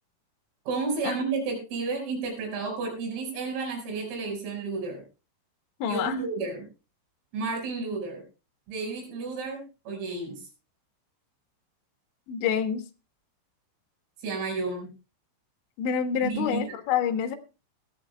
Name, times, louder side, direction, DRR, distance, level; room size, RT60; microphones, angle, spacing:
voice 1, 0.7-5.0 5.8-6.7 7.3-8.2 8.7-10.4 14.2-14.9 16.2-16.6, right 4 dB, 80° right, 3 dB, 7.5 m, -31 dB
voice 2, 5.8-6.2 12.3-12.8 15.8-17.4, left 8 dB, 70° left, 7 dB, 3.2 m, -27 dB
20.5 x 14.5 x 2.2 m, 0.32 s
omnidirectional pair, 5.9 m